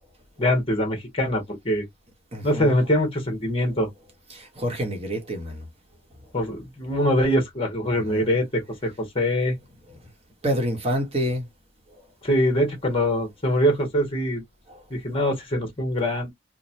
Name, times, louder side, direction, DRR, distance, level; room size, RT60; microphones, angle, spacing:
voice 1, 0.4-1.8 2.4-3.9 6.3-9.5 12.2-14.4 14.9-16.3, equal, 30° left, 1.3 m, -23 dB
voice 2, 2.3-2.7 4.3-5.7 8.1-8.3 10.4-11.4, equal, 30° right, 1.0 m, -27 dB
3.1 x 2.2 x 2.6 m
head